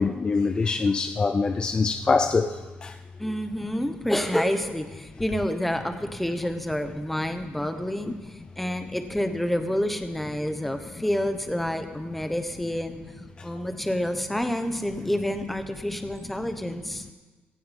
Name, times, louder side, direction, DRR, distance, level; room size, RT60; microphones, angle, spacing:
voice 1, 0.0-2.5 2.8-2.9, left 4 dB, 25° left, 0.5 m, -23 dB
voice 2, 3.2-13.0 13.4-17.0, equal, 5° left, 1.2 m, -28 dB
17.0 x 15.0 x 5.4 m
cardioid pair, 145°, 4 cm